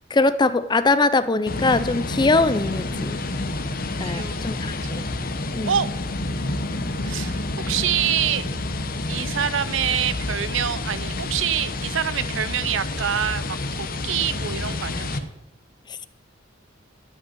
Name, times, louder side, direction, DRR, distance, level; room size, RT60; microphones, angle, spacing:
voice 1, 0.1-3.2 4.0-5.0 5.5-5.8, left 3 dB, 20° left, 14 dB, 0.5 m, -21 dB
sound 1, 1.5-15.2, left 2 dB, 50° left, 0.9 m, -29 dB
voice 2, 4.0-4.5 5.7-5.9 7.0-7.4 7.7-8.4 9.1-15.2, right 9 dB, 70° right, 16 dB, 0.6 m, -26 dB
12.0 x 5.3 x 8.6 m, 0.90 s
head